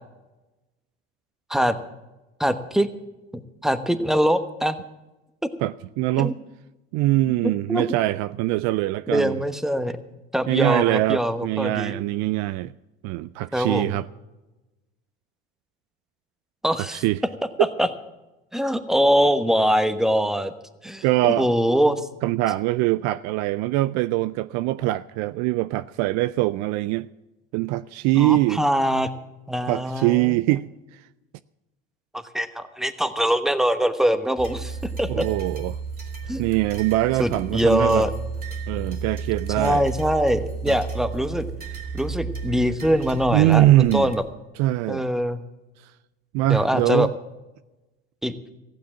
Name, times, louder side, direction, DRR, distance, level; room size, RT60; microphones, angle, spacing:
voice 1, 2.4-2.9 3.3-4.8 5.4-5.5 6.2-6.3 7.4-7.8 9.1-10.0 10.3-11.9 13.5-14.0 16.6-17.0 17.8-17.9 18.5-20.5 20.8-22.1 28.1-29.1 29.5-30.3 32.1-35.3 36.3-36.4 37.2-38.1 39.6-41.5 41.9-44.2 44.9-45.4 46.5-47.1 48.2-48.3, equal, ahead, 1.1 m, -23 dB
voice 2, 5.6-6.4 6.9-9.4 10.5-12.7 13.0-14.1 16.9-17.2 21.0-21.5 22.2-27.1 27.5-28.6 29.6-31.0 35.1-35.8 36.4-38.1 38.7-39.8 40.7-40.8 43.3-44.1 44.6-45.1 46.3-47.1, right 17 dB, 55° right, 0.5 m, -23 dB
sound 1, 34.4-44.2, right 5 dB, 25° right, 2.9 m, -33 dB
15.0 x 9.1 x 7.2 m
hypercardioid pair, 75°, 34 cm